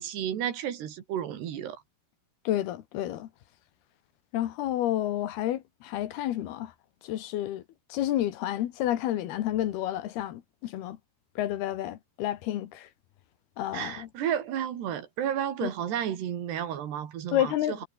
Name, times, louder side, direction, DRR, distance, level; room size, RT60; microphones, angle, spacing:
voice 1, 0.0-1.8 13.7-17.9, right 10 dB, 80° right, 4.5 m, -32 dB
voice 2, 2.5-3.3 4.3-6.7 7.0-7.6 7.9-11.0 11.4-12.9 13.6-14.1 15.6-15.7 17.3-17.8, left 13 dB, 70° left, 3.2 m, -30 dB
omnidirectional pair, 4.8 m